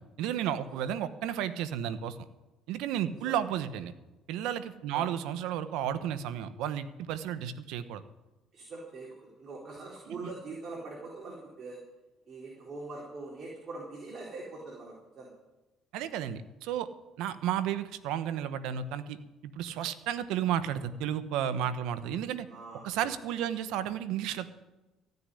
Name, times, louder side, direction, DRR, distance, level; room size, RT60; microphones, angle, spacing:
voice 1, 0.2-2.2 2.7-3.9 4.3-8.0 10.1-10.2 15.9-16.9 17.2-19.2 19.4-22.5 22.8-24.5, right 10 dB, 80° right, 13 dB, 1.0 m, -32 dB
voice 2, 8.5-11.8 12.3-15.3 22.5-22.9, right 3 dB, 45° right, -3 dB, 4.3 m, -43 dB
15.0 x 6.7 x 10.0 m, 1.1 s
supercardioid pair, 85°, 0 cm